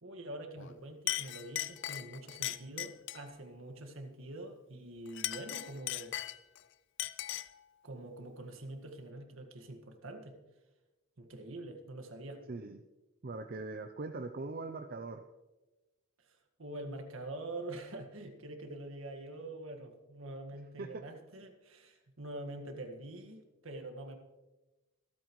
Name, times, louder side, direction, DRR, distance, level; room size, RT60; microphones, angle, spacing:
voice 1, 0.0-6.1 7.8-10.4 11.2-12.4 16.3-24.2, right 1 dB, 70° right, 4 dB, 1.8 m, -45 dB
Chink clink, 0.6-0.8 1.1-3.3 5.1-6.6 7.0-7.6, left 14 dB, 60° left, 0.5 m, -38 dB
voice 2, 12.5-12.8 13.2-15.2 20.8-20.9, right 3 dB, 45° right, 6 dB, 0.6 m, -41 dB
25.5 x 8.9 x 3.1 m, 1.1 s
head